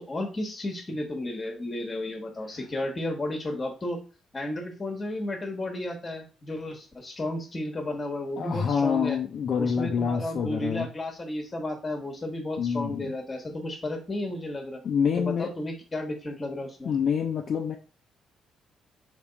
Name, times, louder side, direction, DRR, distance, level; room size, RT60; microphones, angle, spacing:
voice 1, 0.1-4.0 4.3-9.2 9.6-14.8 15.2-16.9, left 1 dB, 30° left, 3 dB, 1.1 m, -33 dB
voice 2, 8.4-10.9 12.6-13.1 14.8-15.5 16.8-17.8, left 6 dB, 55° left, 2 dB, 0.5 m, -27 dB
3.5 x 2.9 x 3.9 m, 0.35 s
cardioid pair, 90°, 0 cm